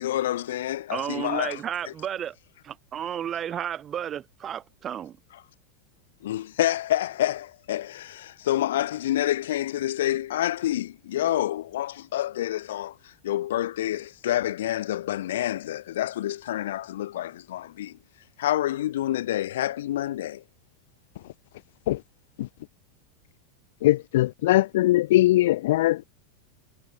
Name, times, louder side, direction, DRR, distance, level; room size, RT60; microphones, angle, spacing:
voice 1, 0.0-1.6 6.2-18.0 18.4-20.4, left 13 dB, 85° left, 5.3 m, -28 dB
voice 2, 0.9-2.4 2.6-5.2, right 9 dB, 20° right, 7.3 m, -32 dB
voice 3, 23.8-26.0, left 16 dB, 60° left, 0.6 m, -20 dB
supercardioid pair, 180°, 0 cm